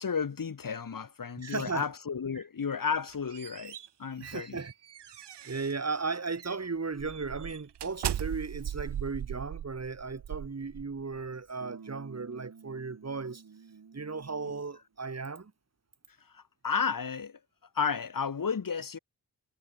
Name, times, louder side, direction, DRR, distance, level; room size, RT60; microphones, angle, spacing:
voice 1, 0.0-4.6 16.3-17.4 17.7-19.0, left 6 dB, 55° left, 1.7 m, -33 dB
voice 2, 1.4-1.9 2.4-2.5 4.2-4.7 5.1-5.2 5.5-13.4 13.9-15.5, right 4 dB, 40° right, 2.2 m, -36 dB
sound 1, 2.9-5.8 6.3-6.5 7.0-11.2, right 11 dB, 90° right, 1.1 m, -39 dB
sound 2, 11.6-14.8, right 6 dB, 60° right, 3.1 m, -51 dB
cardioid pair, 50°, 40 cm